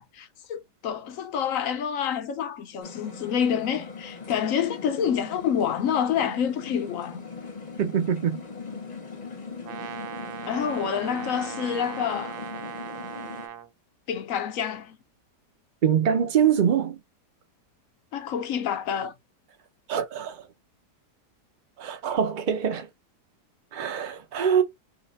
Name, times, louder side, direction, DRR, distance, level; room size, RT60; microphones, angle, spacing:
voice 1, 0.0-7.2 10.5-12.4 14.1-15.0 18.1-19.1, left 8 dB, 65° left, 0.8 m, -28 dB
sound 1, 2.8-13.5, left 4 dB, 35° left, 0.8 m, -40 dB
voice 2, 7.8-8.4 15.8-17.0 19.9-20.5 21.8-22.9 23.7-24.6, right 8 dB, 45° right, 0.6 m, -24 dB
Brass instrument, 9.6-13.7, right 9 dB, 75° right, 1.1 m, -39 dB
3.3 x 2.9 x 4.0 m
omnidirectional pair, 1.8 m